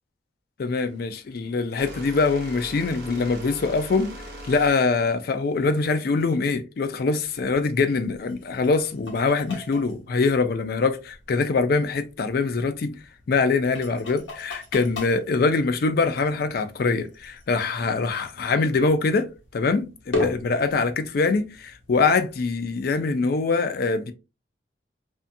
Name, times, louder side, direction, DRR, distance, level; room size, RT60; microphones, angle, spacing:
voice 1, 0.6-4.2 4.5-13.0 13.3-24.1, left 4 dB, 50° left, 0.4 m, -23 dB
sound 1, 0.7-6.5, equal, 55° right, 1.0 m, -41 dB
sound 2, 7.2-23.0, left 2 dB, 85° left, 0.9 m, -39 dB
2.6 x 2.3 x 2.5 m
head